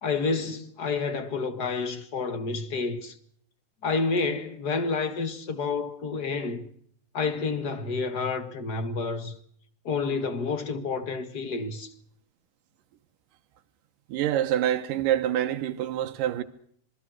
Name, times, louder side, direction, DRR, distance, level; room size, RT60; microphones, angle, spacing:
voice 1, 0.0-3.2 3.8-6.6 7.1-9.3 9.8-11.9, left 4 dB, 35° left, 1.8 m, -29 dB
voice 2, 14.1-16.4, right 11 dB, 85° right, 2.8 m, -26 dB
26.5 x 21.0 x 6.2 m
omnidirectional pair, 3.7 m